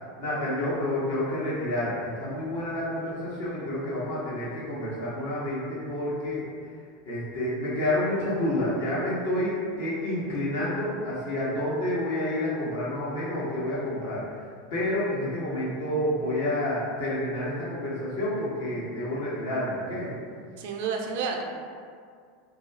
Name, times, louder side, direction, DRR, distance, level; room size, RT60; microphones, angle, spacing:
voice 1, 0.2-6.5 7.1-14.2 14.7-20.1, left 1 dB, 70° left, -7 dB, 0.9 m, -29 dB
voice 2, 20.6-21.4, right 5 dB, 65° right, 2 dB, 0.3 m, -31 dB
2.3 x 2.3 x 3.2 m, 2.1 s
figure-of-eight pair, 85°, 0 cm